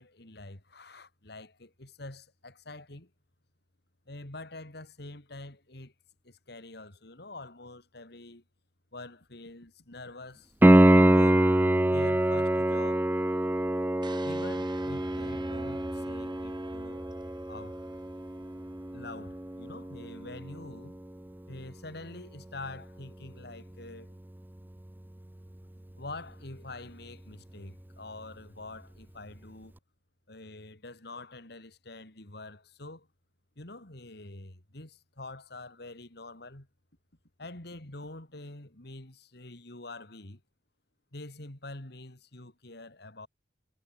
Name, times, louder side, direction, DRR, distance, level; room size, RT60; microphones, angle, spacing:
voice 1, 0.0-3.1 4.0-5.9 6.2-8.4 8.9-10.5 10.9-11.5 11.9-13.1 14.2-17.0 17.5-17.8 18.9-21.0 21.5-24.1 26.0-29.7 30.3-33.1 33.6-36.7 37.4-40.4 41.1-43.3, left 2 dB, 65° left, 3.3 m, -45 dB
Piano, 10.6-21.3 24.6-24.7, right 1 dB, 10° right, 0.5 m, -25 dB
sound 1, 14.0-20.1, right 2 dB, 25° right, 6.8 m, -48 dB
head